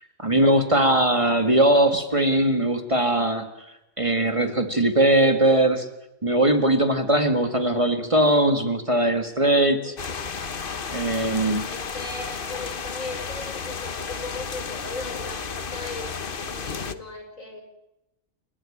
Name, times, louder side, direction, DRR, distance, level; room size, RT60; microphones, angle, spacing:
voice 1, 0.2-3.5 4.0-5.9 6.2-9.9 10.9-11.6, right 1 dB, 25° right, 6 dB, 2.1 m, -20 dB
voice 2, 9.8-10.5 11.3-17.6, left 3 dB, 80° left, 4 dB, 6.0 m, -38 dB
sound 1, 10.0-16.9, left 5 dB, 45° left, 1.2 m, -33 dB
30.0 x 15.5 x 8.8 m, 0.90 s
omnidirectional pair, 1.4 m